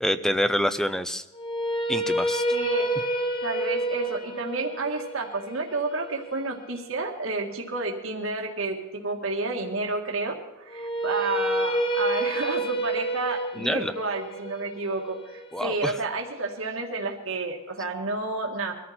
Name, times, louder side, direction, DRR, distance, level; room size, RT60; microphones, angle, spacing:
voice 1, 0.0-1.2 1.9-2.4 13.6-13.9 15.5-16.0, equal, 5° left, 12 dB, 0.5 m, -26 dB
sound 1, 1.3-7.5 10.7-16.8, right 1 dB, 25° left, 1.2 m, -29 dB
voice 2, 2.5-2.9 3.4-18.7, right 3 dB, 80° right, 1 dB, 2.0 m, -30 dB
22.5 x 13.5 x 4.4 m, 0.98 s
head